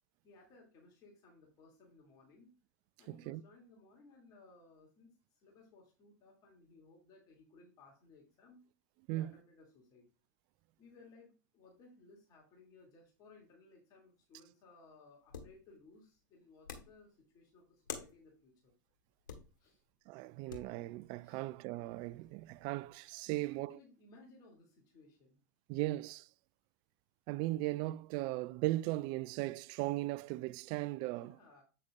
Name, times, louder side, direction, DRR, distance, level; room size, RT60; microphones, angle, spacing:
voice 1, 0.2-2.5 3.0-8.6 9.1-10.1 10.8-18.7 19.6-19.8 21.2-21.5 23.3-25.4 31.1-31.6, left 3 dB, 40° left, 2.6 m, -61 dB
voice 2, 3.1-3.4 9.1-9.3 20.1-23.8 25.7-26.3 27.3-31.4, right 18 dB, 45° right, 0.3 m, -37 dB
sound 1, 15.3-15.6 16.6-17.0 17.8-18.2 19.3-19.8 20.5-20.8 21.7-22.6, left 6 dB, 85° left, 1.6 m, -47 dB
8.3 x 6.5 x 2.4 m
hypercardioid pair, 100°, 10 cm